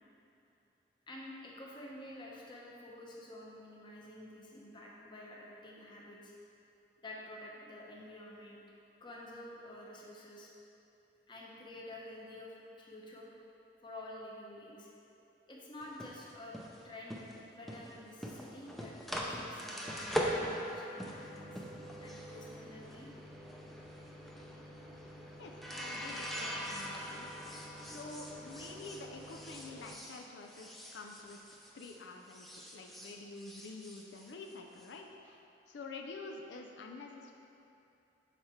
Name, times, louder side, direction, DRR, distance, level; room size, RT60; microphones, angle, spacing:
voice 1, 1.1-6.3 7.0-8.6 9.0-10.5 11.3-13.3 13.8-14.9 15.5-16.6 16.8-17.2 17.5-21.6 22.0-23.1, left 1 dB, 25° left, -4 dB, 0.9 m, -49 dB
sound 1, 15.8-32.0 32.3-34.9, equal, ahead, 0.5 m, -42 dB
voice 2, 25.4-27.3 27.8-31.4 31.7-35.4 35.7-37.3, left 3 dB, 85° left, 2 dB, 0.4 m, -48 dB
6.7 x 4.3 x 4.4 m, 2.7 s
head